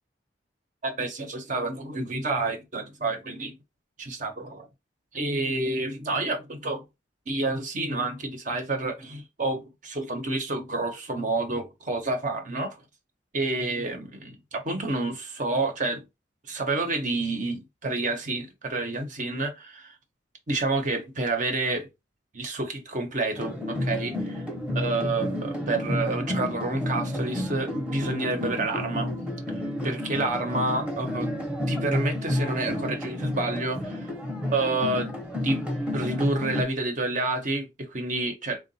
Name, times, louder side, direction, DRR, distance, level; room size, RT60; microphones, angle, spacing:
voice 1, 0.8-3.5 4.0-4.7 5.1-6.8 7.3-12.8 13.3-16.0 16.5-19.9 20.5-21.9 22.3-24.4 24.7-29.1 29.8-31.3 31.7-34.0 34.5-35.1 35.4-35.6 35.9-38.6, right 2 dB, 45° right, 0.9 m, -29 dB
sound 1, 23.4-36.6, left 1 dB, 5° right, 0.9 m, -30 dB
3.7 x 2.4 x 4.0 m
head